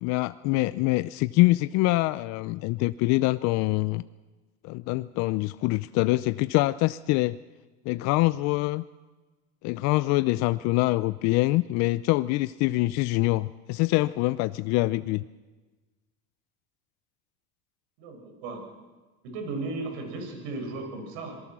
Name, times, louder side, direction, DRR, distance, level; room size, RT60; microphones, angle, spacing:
voice 1, 0.0-4.0 4.6-7.4 7.9-8.8 9.6-15.2, left 19 dB, 55° left, 15 dB, 0.6 m, -25 dB
voice 2, 18.0-18.6 19.2-21.4, right 3 dB, 70° right, 3 dB, 7.1 m, -35 dB
27.0 x 19.5 x 6.2 m, 1.3 s
supercardioid pair, 115°, 33 cm